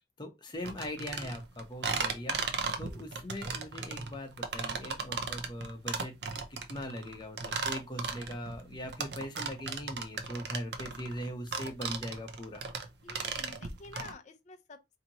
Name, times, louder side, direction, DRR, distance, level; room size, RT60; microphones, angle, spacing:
voice 1, 0.2-12.6, equal, 25° left, 0.9 m, -41 dB
sound 1, 0.6-14.1, right 4 dB, 65° right, 0.6 m, -36 dB
voice 2, 13.0-15.0, left 4 dB, 40° left, 0.5 m, -50 dB
4.2 x 2.9 x 2.9 m
head